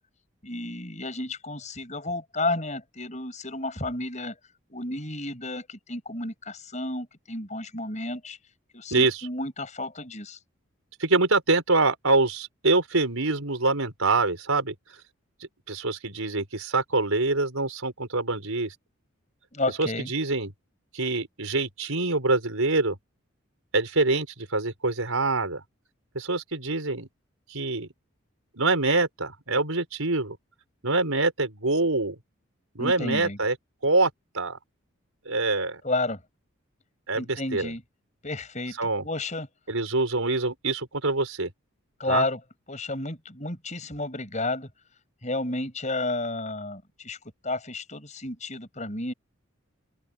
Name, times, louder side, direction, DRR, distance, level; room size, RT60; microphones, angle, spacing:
voice 1, 0.4-4.4 4.7-8.4 8.7-10.4 19.5-20.1 32.8-33.4 35.8-36.2 37.1-37.8 38.2-38.8 39.0-39.5 42.0-42.4 42.7-44.7 45.2-47.2 47.4-49.1, left 2 dB, 35° left, 5.6 m, -31 dB
voice 2, 11.0-14.7 15.7-18.7 19.8-20.5 20.9-23.0 23.7-25.6 26.1-27.1 27.5-27.9 28.6-30.4 30.8-32.1 32.7-33.5 33.8-34.6 35.2-35.8 37.1-37.7 38.8-39.0 39.7-41.5 42.1-42.2, right 3 dB, 90° right, 5.1 m, -25 dB
open air
head